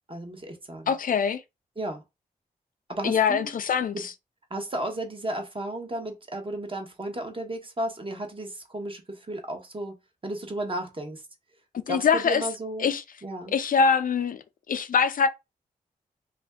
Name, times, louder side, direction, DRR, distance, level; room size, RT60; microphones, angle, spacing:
voice 1, 0.1-0.9 1.8-2.0 2.9-3.5 3.9-4.0 4.5-9.9 10.2-11.2 11.9-12.9 13.2-13.6, right 1 dB, 35° right, 1.0 m, -34 dB
voice 2, 0.9-1.4 3.0-4.1 11.7-12.5 12.8-13.0 13.5-15.3, left 6 dB, 60° left, 0.5 m, -24 dB
2.5 x 2.2 x 3.5 m
supercardioid pair, 45°, 16 cm